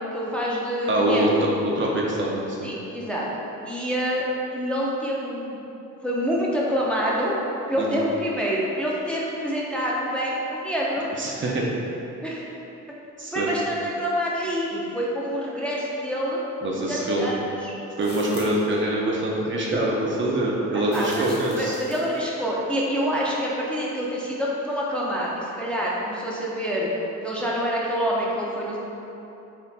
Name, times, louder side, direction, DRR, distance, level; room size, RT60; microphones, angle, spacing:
voice 1, 0.0-1.5 2.6-3.3 3.6-4.2 4.5-5.6 6.0-7.4 7.7-11.1 12.2-12.4 13.3-16.4 16.9-17.7 20.9-26.9 27.2-28.8, equal, 5° left, -6 dB, 0.7 m, -27 dB
voice 2, 0.9-2.7 7.8-8.0 11.2-11.7 13.2-13.5 16.6-17.4 18.0-21.8, right 1 dB, 40° right, -3 dB, 0.6 m, -24 dB
sound 1, 18.0-18.7 20.9-22.2, left 2 dB, 45° left, 1.3 m, -43 dB
4.3 x 2.6 x 4.0 m, 3.0 s
cardioid pair, 90°, 30 cm